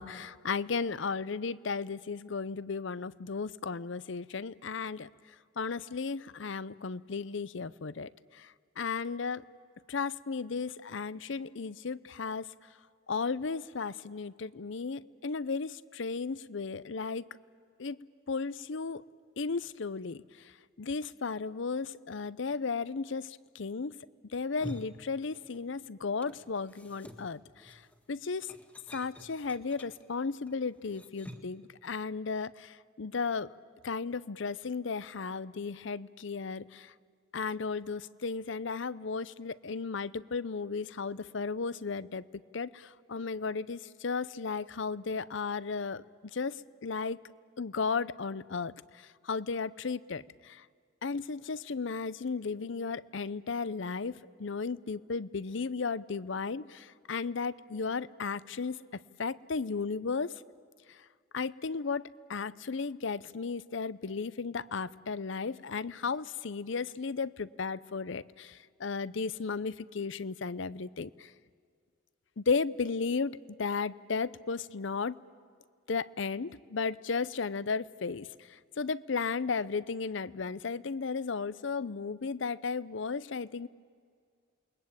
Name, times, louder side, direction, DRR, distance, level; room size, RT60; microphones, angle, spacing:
voice 1, 0.0-5.1 5.6-9.4 9.9-12.5 13.1-17.2 17.8-18.0 18.3-19.0 19.4-20.2 20.8-23.9 24.3-27.8 28.1-28.5 28.9-33.5 33.8-36.9 37.3-42.2 42.5-46.0 46.3-46.6 46.8-47.2 47.6-50.6 51.0-58.8 59.2-60.3 61.3-71.3 72.4-75.2 75.9-83.7, left 4 dB, 65° left, 18 dB, 0.6 m, -35 dB
sound 1, 24.4-25.8 26.0-31.6, equal, 5° left, 1.6 m, -49 dB
28.5 x 22.0 x 8.8 m, 2.1 s
head